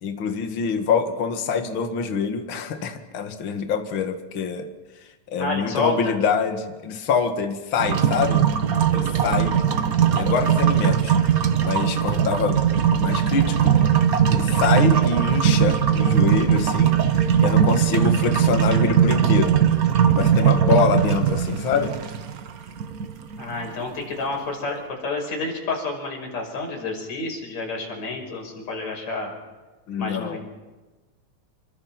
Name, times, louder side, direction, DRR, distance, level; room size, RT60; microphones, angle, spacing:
voice 1, 0.0-4.7 5.3-8.5 8.9-9.6 10.1-11.1 11.6-12.6 13.0-13.8 14.3-16.9 17.4-19.5 20.2-21.9 29.9-30.4, left 6 dB, 45° left, 6 dB, 2.4 m, -25 dB
voice 2, 5.4-6.2 23.4-29.3 30.0-30.4, left 3 dB, 65° left, 0 dB, 7.1 m, -29 dB
sound 1, 7.8-23.7, right 8 dB, 80° right, 0.8 m, -20 dB
27.5 x 24.0 x 6.0 m, 1.2 s
omnidirectional pair, 3.3 m